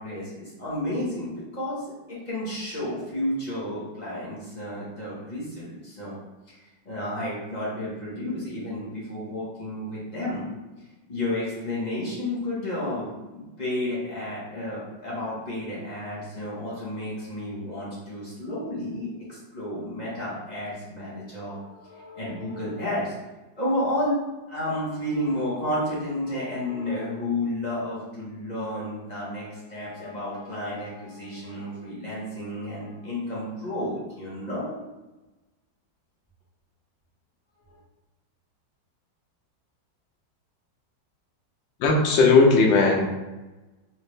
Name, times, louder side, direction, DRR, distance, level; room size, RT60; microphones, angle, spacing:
voice 1, 0.0-6.1 6.5-10.4 11.1-23.2 23.6-24.2 24.5-34.8 37.7-37.8, left 1 dB, 30° left, -8 dB, 1.0 m, -31 dB
voice 2, 41.8-43.0, left 3 dB, 80° left, 0 dB, 1.4 m, -17 dB
4.2 x 2.5 x 3.1 m, 1.1 s
omnidirectional pair, 2.0 m